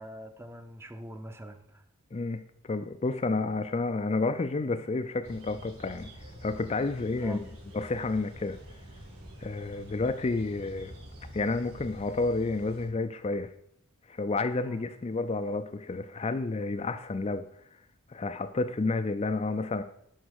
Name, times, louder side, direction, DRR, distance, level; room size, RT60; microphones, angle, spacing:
voice 1, 0.0-1.8 7.2-7.4 14.6-14.9, equal, 10° right, 0.6 m, -44 dB
voice 2, 2.1-6.1 6.4-7.5 7.7-8.6 9.4-10.9 11.3-13.5 14.1-17.5 18.1-19.8, left 3 dB, 30° left, 0.4 m, -30 dB
sound 1, 5.2-12.9, equal, 80° right, 3.3 m, -47 dB
11.0 x 4.0 x 6.4 m
head